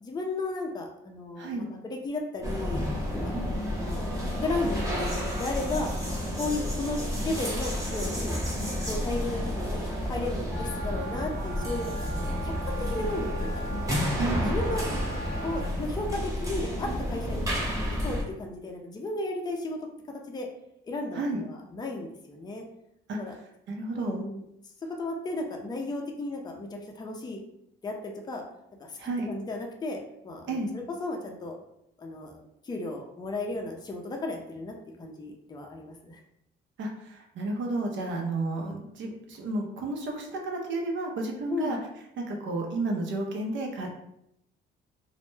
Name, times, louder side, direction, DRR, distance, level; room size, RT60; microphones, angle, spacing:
voice 1, 0.0-2.8 3.1-3.2 3.6-5.9 6.4-8.4 8.6-12.1 12.4-13.8 14.4-14.8 15.4-17.6 18.0-19.8 20.3-20.5 20.8-22.6 23.1-23.3 23.9-24.4 25.0-27.4 27.8-28.4 28.8-28.9 29.3-31.5 32.0-36.2 41.5-41.8, left 2 dB, 20° left, 1 dB, 0.4 m, -34 dB
sound 1, 2.4-18.2, equal, 15° right, 0.9 m, -31 dB
Wind instrument woodwind instrument, 10.5-15.7, right 3 dB, 50° right, 1.1 m, -40 dB
voice 2, 14.2-14.5 21.1-21.4 23.1-23.2 23.7-24.2 29.0-29.3 30.5-30.7 36.8-41.8 42.2-43.9, right 2 dB, 75° right, 1 dB, 0.6 m, -32 dB
2.1 x 2.1 x 3.1 m, 0.79 s
cardioid pair, 90°, 20 cm